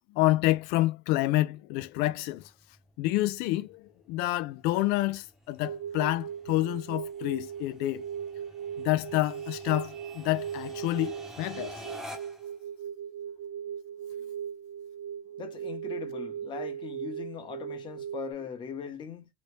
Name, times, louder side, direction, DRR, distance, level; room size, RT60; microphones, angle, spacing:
voice 1, 0.1-2.5 3.0-8.0 8.8-12.0, left 17 dB, 80° left, 0.4 m, -28 dB
sound 1, 2.3-12.5, equal, 5° right, 0.8 m, -49 dB
sound 2, 5.6-18.3, right 8 dB, 75° right, 0.4 m, -38 dB
voice 2, 15.4-19.3, left 7 dB, 30° left, 0.9 m, -40 dB
3.0 x 2.6 x 3.3 m
cardioid pair, 170°, 16 cm